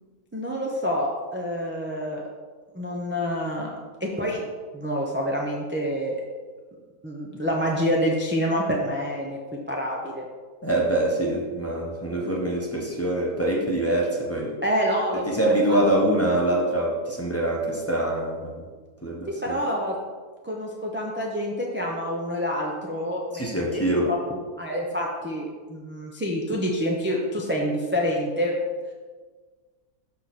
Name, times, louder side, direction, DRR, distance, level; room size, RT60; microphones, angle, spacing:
voice 1, 0.3-2.3 2.7-4.4 4.7-6.2 7.0-9.4 9.7-10.2 14.6-15.8 19.3-20.0 20.4-23.7 24.0-28.5, equal, 10° right, -2 dB, 0.5 m, -27 dB
voice 2, 10.6-14.6 15.3-18.6 19.0-19.6 23.3-24.1, right 1 dB, 10° left, -2 dB, 0.9 m, -24 dB
6.4 x 6.4 x 4.2 m, 1.5 s
omnidirectional pair, 1.6 m